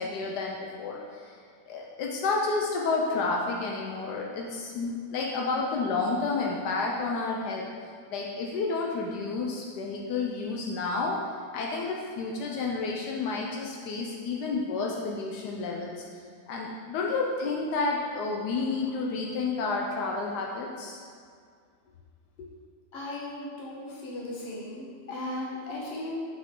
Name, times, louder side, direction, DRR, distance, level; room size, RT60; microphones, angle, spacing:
voice 1, 0.0-1.4 1.7-7.7 8.1-11.2 11.5-16.0 16.5-21.0 22.4-22.5, left 3 dB, 80° left, -1 dB, 1.2 m, -30 dB
voice 2, 22.9-26.2, left 1 dB, 40° left, -5 dB, 1.3 m, -36 dB
5.8 x 4.8 x 3.7 m, 2.1 s
omnidirectional pair, 1.8 m